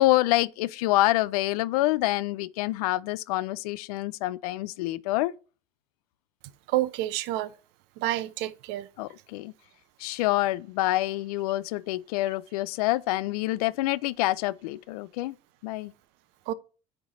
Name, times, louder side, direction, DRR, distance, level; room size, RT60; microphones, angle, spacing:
voice 1, 0.0-5.3 9.0-9.5 10.0-15.4 15.6-15.9, left 17 dB, 90° left, 0.4 m, -26 dB
voice 2, 6.7-7.5 8.0-8.9 16.5-16.6, right 14 dB, 75° right, 0.6 m, -28 dB
9.5 x 3.3 x 4.1 m
supercardioid pair, 80°, 19 cm